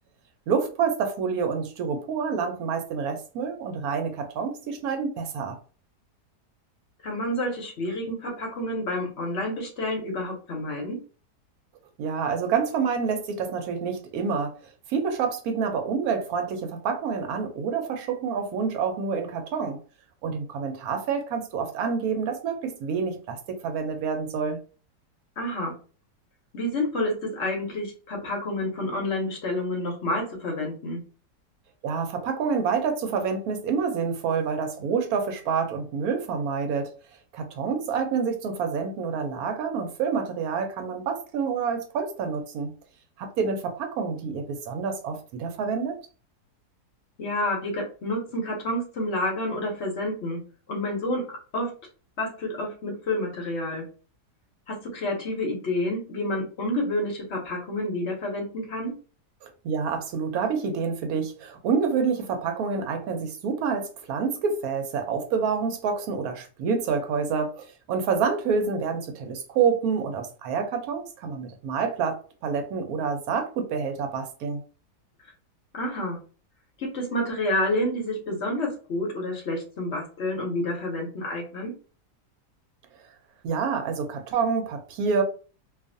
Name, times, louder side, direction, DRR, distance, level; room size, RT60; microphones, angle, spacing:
voice 1, 0.5-5.6 12.0-19.8 20.2-24.6 31.8-36.9 37.3-42.7 43.2-46.0 59.4-74.6 83.4-85.2, right 6 dB, 70° right, 5 dB, 1.0 m, -28 dB
voice 2, 7.0-11.0 25.4-25.7 26.5-31.0 47.2-50.4 50.7-51.7 52.2-53.8 54.7-58.9 75.7-76.2 76.8-81.7, left 1 dB, 55° left, 0 dB, 0.8 m, -29 dB
2.5 x 2.4 x 2.5 m, 0.38 s
omnidirectional pair, 1.8 m